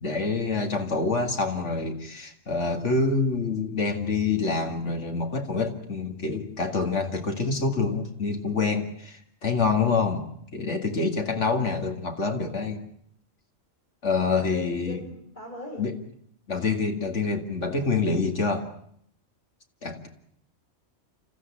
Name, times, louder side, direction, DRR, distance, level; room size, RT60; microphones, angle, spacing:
voice 1, 0.0-10.3 10.5-12.8 14.0-15.0 15.8-16.0 16.5-18.7 19.8-20.1, left 4 dB, 70° left, 5 dB, 2.6 m, -26 dB
voice 2, 14.4-15.9, left 1 dB, 40° left, 0 dB, 6.4 m, -39 dB
28.0 x 14.5 x 8.7 m, 0.68 s
omnidirectional pair, 1.3 m